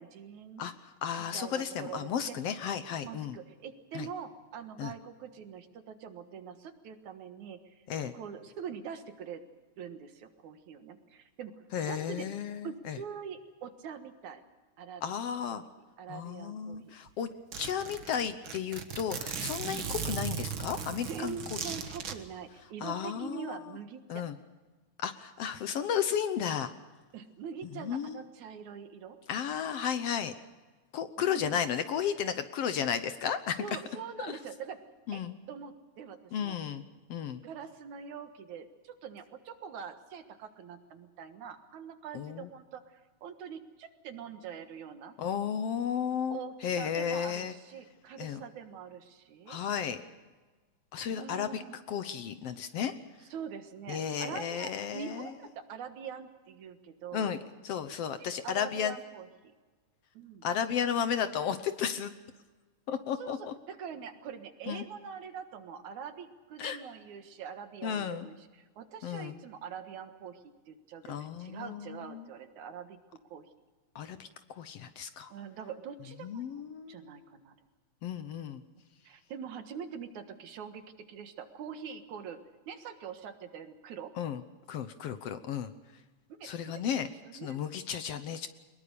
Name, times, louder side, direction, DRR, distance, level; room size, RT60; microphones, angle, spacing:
voice 1, 0.0-0.7 1.2-2.4 3.0-7.8 8.1-9.4 9.8-12.3 12.6-14.4 14.8-15.0 15.5-15.7 16.0-16.9 19.7-19.9 21.1-24.2 27.1-29.2 31.2-31.6 33.6-34.8 35.1-36.6 37.4-45.2 46.3-49.6 51.1-51.8 53.3-57.3 58.2-59.5 60.1-60.5 63.2-63.4 63.7-73.0 73.3-73.5 75.3-76.4 76.9-77.6 79.0-80.8 81.1-84.1 86.3-86.8 87.2-87.6, right 7 dB, 80° right, 8 dB, 2.9 m, -44 dB
voice 2, 0.6-3.4 3.9-4.1 4.8-4.9 7.9-8.1 11.7-13.0 15.0-15.6 16.1-17.3 17.6-21.7 22.8-23.8 24.1-24.4 25.0-26.7 27.7-28.2 29.3-30.3 30.9-33.6 34.3-34.4 35.1-35.4 36.3-36.8 37.1-37.4 42.1-42.5 45.2-47.5 48.2-48.4 49.5-50.0 50.9-51.6 51.9-52.9 53.9-55.3 57.1-57.4 57.6-59.0 60.4-62.1 62.9-63.5 64.7-64.8 66.6-66.8 67.8-68.3 69.0-69.4 71.1-72.3 73.9-75.3 76.2-77.3 78.0-78.6 84.2-84.4 84.7-85.7 86.4-88.5, left 8 dB, 65° left, 11 dB, 1.7 m, -34 dB
Zipper (clothing), 16.7-16.8 17.1-17.2 17.5-22.1, right 7 dB, 50° right, 2.0 m, -37 dB
23.0 x 21.5 x 6.9 m, 1.3 s
omnidirectional pair, 3.4 m